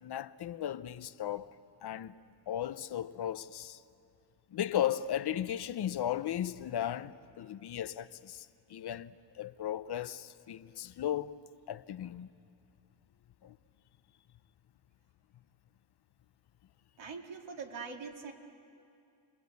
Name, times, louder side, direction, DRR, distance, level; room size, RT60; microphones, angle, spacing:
voice 1, 0.0-1.5 1.8-2.1 2.5-3.8 4.5-9.1 9.4-11.4 11.7-12.3 13.4-13.6, left 11 dB, 65° left, 0.7 m, -36 dB
voice 2, 17.0-18.3, right 5 dB, 80° right, 2.3 m, -43 dB
28.5 x 21.5 x 8.2 m
wide cardioid pair, 155°, 44 cm